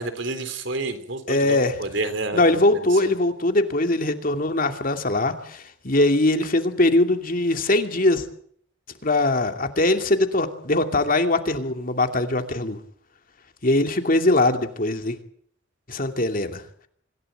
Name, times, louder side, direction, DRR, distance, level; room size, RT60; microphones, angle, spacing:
voice 1, 0.0-2.6 3.0-3.1, right 2 dB, 65° right, 10 dB, 3.9 m, -29 dB
voice 2, 1.3-1.8 2.3-8.2 9.0-12.8 13.6-15.2 15.9-16.6, left 2 dB, 45° left, 6 dB, 2.6 m, -21 dB
26.0 x 16.5 x 9.2 m, 0.63 s
head